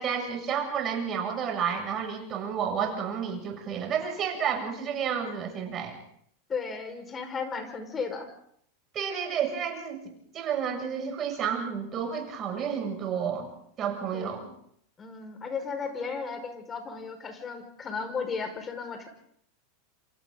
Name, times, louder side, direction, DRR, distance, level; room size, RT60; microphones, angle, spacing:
voice 1, 0.0-5.9 8.9-13.5 13.8-14.5, right 7 dB, 35° right, 3 dB, 7.3 m, -31 dB
voice 2, 6.5-8.3 14.1-14.5 15.0-19.1, left 5 dB, 25° left, 7 dB, 5.5 m, -35 dB
27.5 x 26.5 x 4.1 m, 0.67 s
hypercardioid pair, 95°, 0 cm